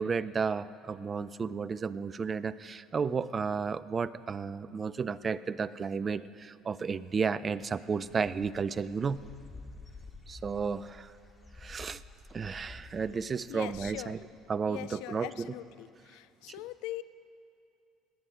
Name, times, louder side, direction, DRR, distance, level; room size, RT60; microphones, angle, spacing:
voice 1, 0.0-9.2 10.3-11.1 11.6-12.0 12.3-14.2 14.5-15.5, right 5 dB, 35° right, 17 dB, 0.4 m, -33 dB
Dog / Bird, 7.9-14.2, left 3 dB, 25° left, 1.9 m, -51 dB
voice 2, 13.5-14.2 14.6-17.0, left 15 dB, 70° left, 15 dB, 0.4 m, -42 dB
18.0 x 9.2 x 5.0 m, 2.6 s
hypercardioid pair, 60°, 0 cm